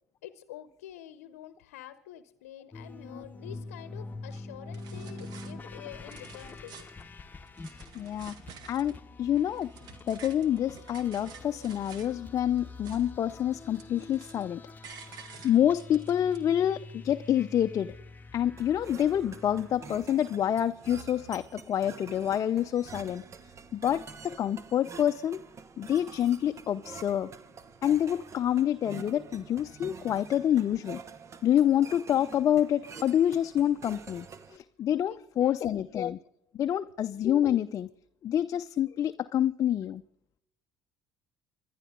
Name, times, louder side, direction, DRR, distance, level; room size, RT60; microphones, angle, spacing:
voice 1, 0.2-6.9 35.1-36.0 36.7-37.0, left 12 dB, 80° left, 13 dB, 0.8 m, -48 dB
sound 1, 2.7-20.1, left 3 dB, 25° left, 1.0 m, -46 dB
sound 2, 4.3-4.4 4.7-5.5 5.9-7.0 7.5-9.0 9.3-12.2 12.5-13.3 13.5-14.5 14.8-16.4, right 6 dB, 60° right, 1.7 m, -50 dB
voice 2, 7.9-8.3 8.7-9.7 10.1-14.6 15.4-17.9 18.3-23.2 23.7-25.4 25.8-27.3 27.8-31.0 31.4-36.2 36.5-37.9 38.2-40.0, left 10 dB, 45° left, 8 dB, 0.5 m, -27 dB
sound 3, 18.6-34.6, right 5 dB, 40° right, 1.2 m, -47 dB
28.0 x 11.0 x 3.7 m, 0.80 s
hypercardioid pair, 65°, 8 cm